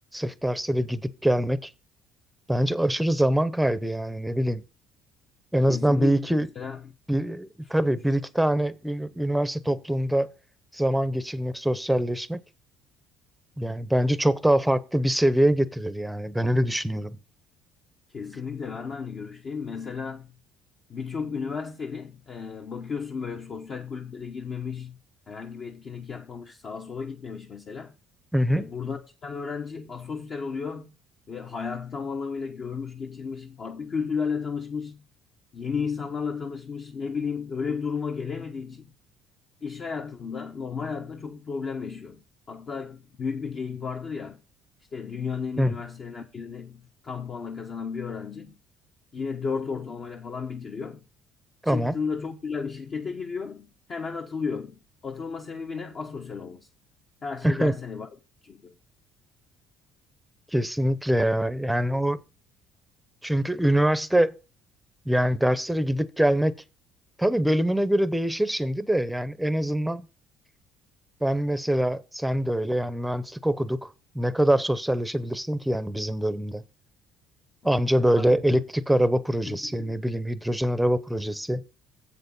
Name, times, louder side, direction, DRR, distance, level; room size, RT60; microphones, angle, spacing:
voice 1, 0.1-1.7 2.5-4.6 5.5-6.5 7.1-10.3 10.7-12.4 13.6-17.2 28.3-28.6 45.6-45.7 51.6-51.9 57.4-57.7 60.5-62.2 63.2-64.3 65.1-66.5 67.2-70.1 71.2-73.9 74.1-76.6 77.6-81.6, right 1 dB, 5° right, 0.7 m, -24 dB
voice 2, 5.7-6.9 7.7-7.8 18.1-20.4 20.9-25.0 25.3-27.9 28.5-30.9 31.3-35.0 35.5-38.9 39.6-44.4 44.9-48.6 49.1-51.0 51.6-56.7 57.2-58.1 58.4-58.7 77.6-78.6 79.5-80.1, left 5 dB, 45° left, 1.1 m, -34 dB
7.8 x 6.6 x 5.4 m
cardioid pair, 95°, 0 cm